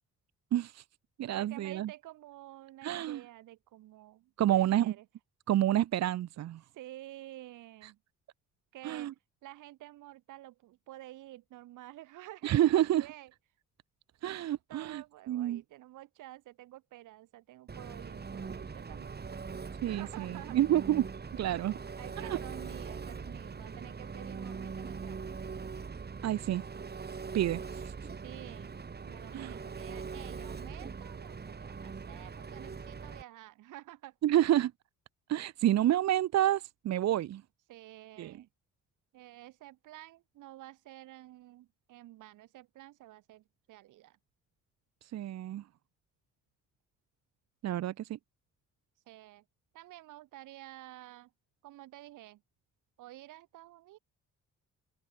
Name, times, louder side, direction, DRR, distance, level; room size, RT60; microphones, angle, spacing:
voice 1, 0.5-0.8 1.2-1.9 2.8-3.2 4.4-4.9 5.5-6.6 8.8-9.1 12.4-13.1 14.2-15.6 19.8-21.1 21.3-21.7 22.2-22.4 26.2-26.7 27.3-27.9 29.3-29.6 34.2-34.7 35.3-37.4 38.2-38.3 45.0-45.6 47.6-48.2, right 12 dB, 60° right, 0.8 m, -29 dB
voice 2, 1.3-5.1 6.7-8.0 8.7-9.1 9.4-13.3 14.7-19.4 19.9-20.6 22.0-25.3 28.2-34.2 37.7-38.5 39.1-44.2 49.1-49.4 49.7-51.3 51.6-52.4 53.0-54.0, right 15 dB, 85° right, 2.0 m, -50 dB
Engine, 17.7-33.2, right 5 dB, 35° right, 2.8 m, -42 dB
cardioid pair, 90°, 30 cm